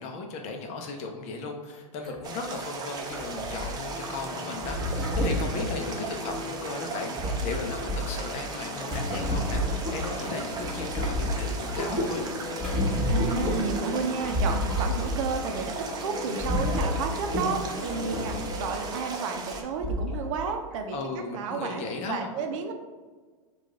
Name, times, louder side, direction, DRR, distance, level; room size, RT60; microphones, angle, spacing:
voice 1, 0.0-12.3 20.9-22.3, left 3 dB, 40° left, 3 dB, 0.7 m, -36 dB
sound 1, 2.0-2.2 2.5-2.6 3.1-4.0 4.6-6.4 6.9-10.3 10.6-15.4 15.7-15.9 16.2-18.9 19.5-19.6 19.8-20.3 20.7-20.8, left 1 dB, ahead, 1.5 m, -30 dB
sound 2, 2.2-19.6, right 3 dB, 20° right, 0.6 m, -37 dB
sound 3, 3.9-20.6, left 4 dB, 20° left, 1.2 m, -41 dB
voice 2, 13.1-21.0 21.3-22.7, right 5 dB, 60° right, 5 dB, 0.6 m, -32 dB
4.6 x 2.5 x 3.6 m, 1.4 s
hypercardioid pair, 110°, 18 cm